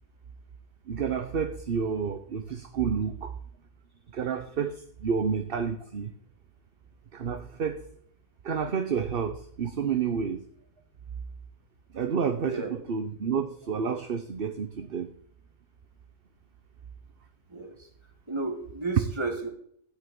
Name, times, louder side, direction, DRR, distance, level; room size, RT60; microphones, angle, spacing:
voice 1, 0.9-3.3 4.1-6.1 7.1-7.8 8.4-10.4 11.9-15.1, right 6 dB, 45° right, 8 dB, 1.0 m, -30 dB
voice 2, 12.4-12.8 17.5-17.9 18.3-19.5, right 3 dB, 20° right, 1 dB, 2.8 m, -33 dB
15.0 x 5.6 x 9.4 m, 0.65 s
omnidirectional pair, 1.6 m